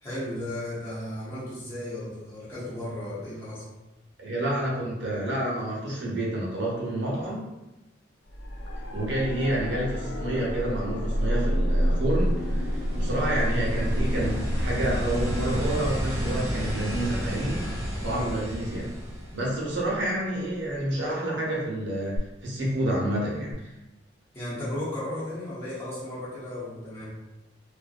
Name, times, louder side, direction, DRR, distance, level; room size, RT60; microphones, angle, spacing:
voice 1, 0.0-3.7 18.1-18.4 24.3-27.1, left 1 dB, 15° left, -11 dB, 0.9 m, -35 dB
voice 2, 4.2-7.5 8.9-17.6 18.0-18.9 19.3-22.1 22.4-23.7, right 1 dB, 70° right, -4 dB, 0.8 m, -29 dB
sound 1, 8.3-21.2 23.5-23.6, equal, 75° left, 0.4 m, -30 dB
sound 2, 11.5-20.0 22.2-22.3, equal, 15° right, 0.6 m, -32 dB
2.5 x 2.2 x 2.5 m, 0.99 s
head